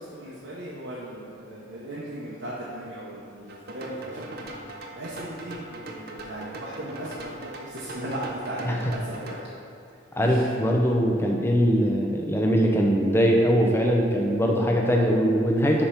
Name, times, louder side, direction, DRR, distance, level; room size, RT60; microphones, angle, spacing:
voice 1, 0.0-4.5 4.9-9.4 10.2-10.6, right 1 dB, 75° right, -7 dB, 0.9 m, -37 dB
sound 1, 3.5-9.4, right 1 dB, 50° right, 0.6 m, -40 dB
voice 2, 10.2-15.9, equal, 10° left, 0 dB, 0.5 m, -21 dB
5.1 x 4.4 x 5.7 m, 2.4 s
head